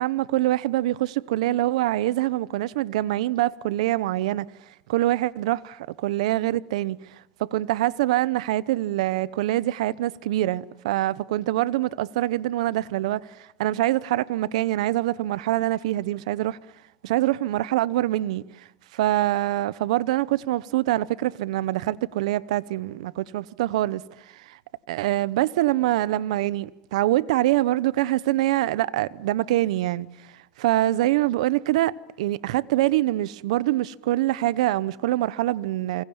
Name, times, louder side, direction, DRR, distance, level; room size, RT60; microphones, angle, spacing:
voice 1, 0.0-4.5 4.9-16.6 17.0-24.6 24.9-36.0, right 15 dB, 85° right, 0.9 m, -25 dB
27.0 x 25.0 x 7.2 m
supercardioid pair, 105°, 3 cm